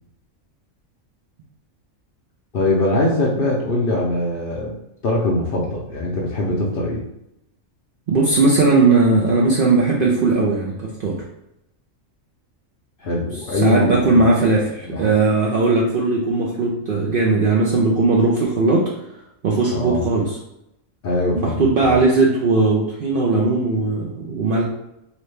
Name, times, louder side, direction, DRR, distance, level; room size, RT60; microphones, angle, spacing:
voice 1, 2.5-4.7 5.0-7.0 13.0-14.3 14.8-15.1 19.7-20.1 21.0-21.9, left 1 dB, 55° left, -4 dB, 0.6 m, -22 dB
voice 2, 8.1-11.2 13.5-18.9 19.4-20.4 21.4-24.6, right 3 dB, 60° right, -3 dB, 0.6 m, -18 dB
3.0 x 2.6 x 3.2 m, 0.82 s
omnidirectional pair, 1.4 m